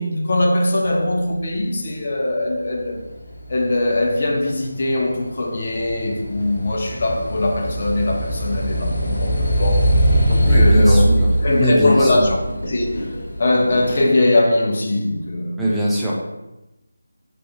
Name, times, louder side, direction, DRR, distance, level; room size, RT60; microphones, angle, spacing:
voice 1, 0.0-3.0 3.5-9.8 10.2-11.1 11.4-12.4 12.6-13.1 13.4-15.6, left 1 dB, 45° left, 0.6 m, -20 dB
sound 1, 2.7-14.1, right 1 dB, 80° left, 1.2 m, -21 dB
voice 2, 10.5-12.3 15.6-16.2, equal, ahead, 0.4 m, -21 dB
3.1 x 2.9 x 2.7 m
figure-of-eight pair, 170°, 0 cm